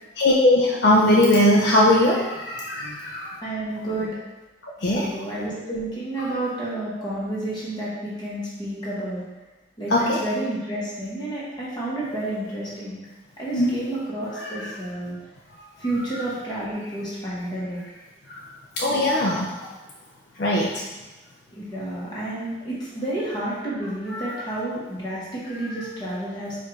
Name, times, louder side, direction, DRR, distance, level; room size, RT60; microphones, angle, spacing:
voice 1, 0.2-3.4 4.8-5.1 6.2-6.3 9.9-10.2 13.5-13.8 14.3-14.7 18.3-18.5 18.8-19.5 20.4-20.8 24.1-24.4 25.6-25.8, left 1 dB, 60° left, -3 dB, 0.5 m, -20 dB
voice 2, 3.4-4.2 4.8-9.2 9.8-13.0 13.4-15.1 15.8-17.8 18.9-19.0 21.5-26.6, right 1 dB, 20° left, -8 dB, 1.2 m, -30 dB
4.6 x 2.5 x 4.4 m, 1.2 s
head